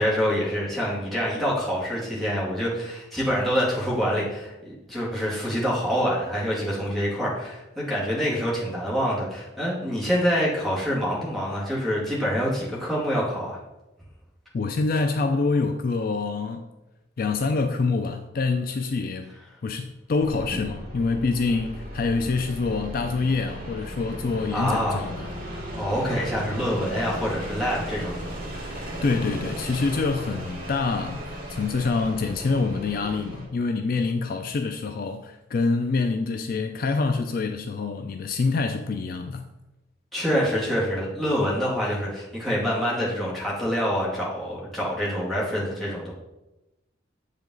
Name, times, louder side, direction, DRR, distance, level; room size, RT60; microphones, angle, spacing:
voice 1, 0.0-13.6 24.5-25.1 25.7-28.3 40.1-46.1, equal, ahead, 2.2 m, -26 dB
voice 2, 14.5-16.7 17.2-19.3 19.6-25.3 29.0-31.2 31.5-39.5, left 4 dB, 50° left, 0.4 m, -26 dB
sound 1, 20.2-33.5, equal, 50° right, 2.2 m, -36 dB
7.4 x 5.0 x 3.9 m
head